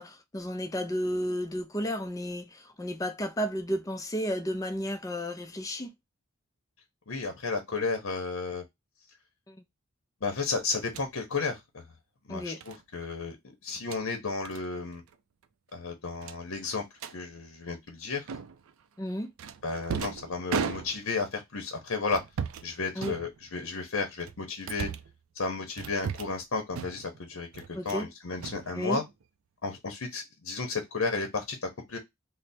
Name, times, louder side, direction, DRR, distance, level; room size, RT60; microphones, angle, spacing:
voice 1, 0.0-5.9 9.5-9.6 12.3-12.6 19.0-19.3 23.0-23.1 27.7-28.1 28.7-29.0, equal, 15° left, 0.4 m, -32 dB
voice 2, 7.1-8.6 10.2-11.8 12.3-13.4 13.6-15.0 15.7-16.8 17.1-18.2 19.6-22.2 22.6-24.9 25.3-27.5 27.8-29.0 29.6-32.0, left 4 dB, 65° left, 0.8 m, -33 dB
sound 1, 10.8-11.1 12.6-12.8 13.7-14.0 14.4-14.6 14.9-15.1 15.4-15.5 16.2-17.2 18.3-18.7 19.4-21.3 22.1-22.7 23.0-23.7 24.2-25.2 25.8-26.4 26.7-27.2 27.5-28.1 28.4-29.2, right 6 dB, 70° right, 0.4 m, -37 dB
3.2 x 2.0 x 4.0 m
head